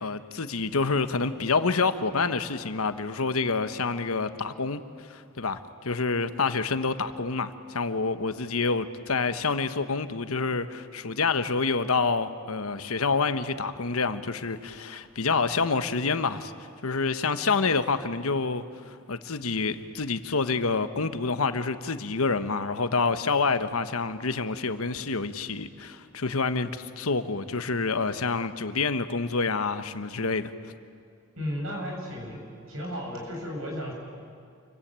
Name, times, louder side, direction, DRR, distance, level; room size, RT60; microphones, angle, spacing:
voice 1, 0.0-4.8 5.1-16.5 16.8-30.5, left 4 dB, 85° left, 10 dB, 1.2 m, -27 dB
voice 2, 31.4-32.4 32.7-33.9, equal, 70° right, 1 dB, 7.2 m, -34 dB
28.5 x 23.5 x 8.9 m, 2.4 s
head